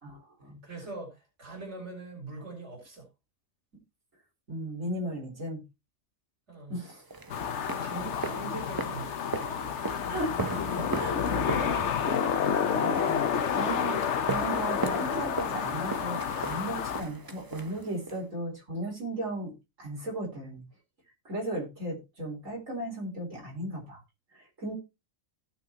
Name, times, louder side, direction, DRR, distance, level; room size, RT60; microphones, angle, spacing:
voice 1, 0.0-0.6 4.5-5.6 6.7-7.0 10.1-19.5 19.8-20.6 21.2-24.0 24.3-24.7, right 1 dB, 80° right, 4.3 m, -36 dB
voice 2, 0.6-3.1 6.5-6.8 7.2-7.4 7.8-9.1, right 3 dB, 60° right, 3.9 m, -42 dB
sound 1, 7.1-18.2, right 3 dB, 25° right, 0.5 m, -38 dB
sound 2, 7.3-17.0, left 7 dB, 65° left, 1.1 m, -30 dB
17.5 x 5.9 x 2.9 m
omnidirectional pair, 1.4 m